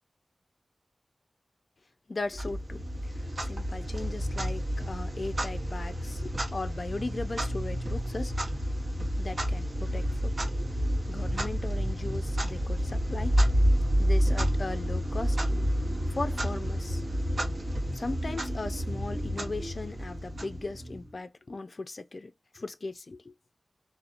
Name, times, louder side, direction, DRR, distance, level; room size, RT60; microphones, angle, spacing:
voice 1, 2.1-2.8 3.2-8.3 9.2-10.3 11.1-13.4 14.0-15.4 16.1-17.0 17.9-23.3, left 3 dB, 55° left, 0.4 m, -38 dB
Clock, 2.3-21.1, equal, 55° right, 0.9 m, -29 dB
2.7 x 2.0 x 2.4 m
cardioid pair, 50°, 0 cm